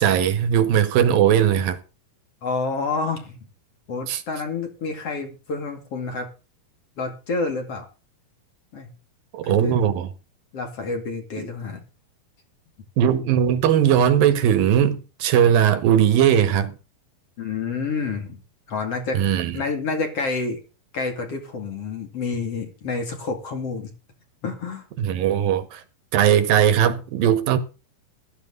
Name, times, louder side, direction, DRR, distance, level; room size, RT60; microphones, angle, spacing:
voice 1, 0.0-1.8 4.1-4.2 9.3-10.1 11.4-11.5 13.0-16.8 19.1-19.6 25.0-25.8 26.1-27.6, right 9 dB, 75° right, 2.8 m, -19 dB
voice 2, 2.4-3.4 3.9-6.3 7.0-7.8 8.7-8.9 9.4-9.8 10.5-11.8 17.4-18.4 18.7-19.2 19.5-20.6 20.9-23.9 24.4-24.8, left 4 dB, 45° left, 3.0 m, -28 dB
15.0 x 13.0 x 3.8 m
omnidirectional pair, 4.2 m